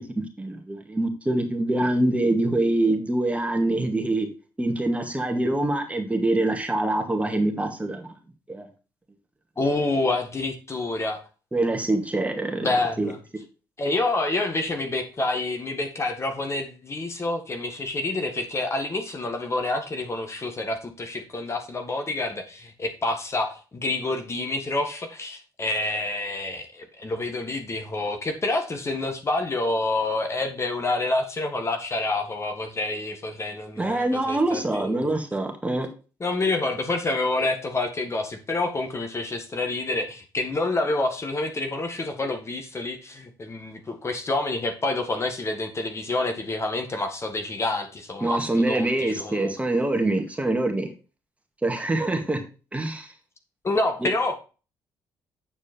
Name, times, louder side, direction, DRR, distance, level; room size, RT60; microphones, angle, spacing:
voice 1, 0.4-4.3 4.6-8.1 8.5-8.7 11.5-12.7 13.0-13.1 33.8-35.9 48.2-50.9 51.6-52.4 52.7-53.1 54.0-54.1, right 2 dB, 15° right, 4 dB, 2.0 m, -24 dB
voice 2, 9.6-11.2 12.6-13.2 13.8-35.1 36.2-49.5 53.6-54.4, left 2 dB, 35° left, 6 dB, 1.7 m, -28 dB
8.8 x 4.8 x 4.4 m, 0.34 s
supercardioid pair, 70°, 8 cm